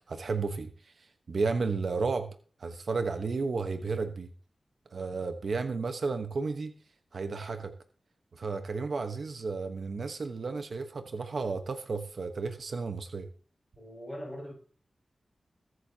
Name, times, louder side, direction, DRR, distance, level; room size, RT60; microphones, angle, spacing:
voice 1, 0.0-2.3 2.6-4.3 4.9-6.7 7.1-7.7 8.3-13.3, right 4 dB, 70° right, 7 dB, 1.1 m, -33 dB
voice 2, 13.8-14.5, equal, 10° left, -2 dB, 6.0 m, -41 dB
22.0 x 8.2 x 2.9 m, 0.42 s
wide cardioid pair, 90°, 0 cm